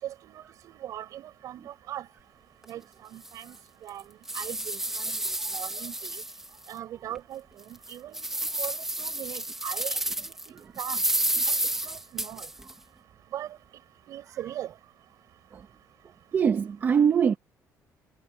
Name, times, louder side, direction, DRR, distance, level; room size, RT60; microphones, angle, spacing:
voice 1, 0.0-2.1 2.7-2.8 3.1-3.6 3.8-4.0 4.3-6.2 6.7-7.4 7.7-8.3 8.6-11.0 11.5-11.6 11.8-12.5 13.3-13.5 14.1-14.7, right 12 dB, 55° right, 7.8 m, -40 dB
sound 1, 2.6-2.7 3.2-3.3 3.9-6.7 7.1-7.2 7.7-10.5 10.8-12.7, right 1 dB, 5° right, 2.1 m, -30 dB
voice 2, 16.3-17.3, right 7 dB, 30° right, 1.5 m, -22 dB
cardioid pair, 175°, 7 cm